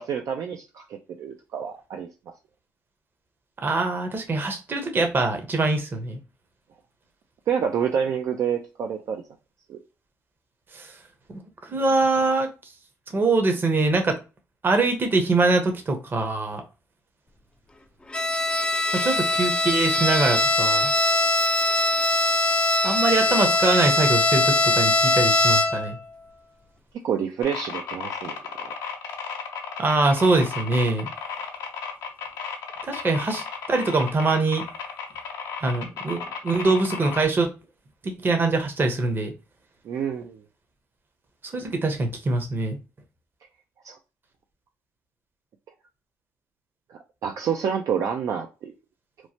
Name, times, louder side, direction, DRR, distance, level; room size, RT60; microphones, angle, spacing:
voice 1, 0.0-2.1 7.5-9.2 9.7-9.8 27.0-28.7 39.8-40.4 43.8-44.0 46.9-48.7, right 7 dB, 65° right, 0.4 m, -28 dB
voice 2, 3.6-6.2 10.7-10.9 11.3-11.4 11.7-12.5 13.1-14.2 14.6-16.6 18.9-20.9 22.8-26.0 29.8-31.1 32.9-33.4 33.7-34.6 35.6-37.5 38.0-39.3 41.5-42.8, right 3 dB, 35° right, 0.8 m, -23 dB
Bowed string instrument, 18.1-26.0, left 2 dB, 15° left, 0.4 m, -21 dB
sound 1, 27.4-37.3, left 6 dB, 85° left, 0.7 m, -34 dB
3.0 x 2.1 x 2.7 m
supercardioid pair, 75°, 6 cm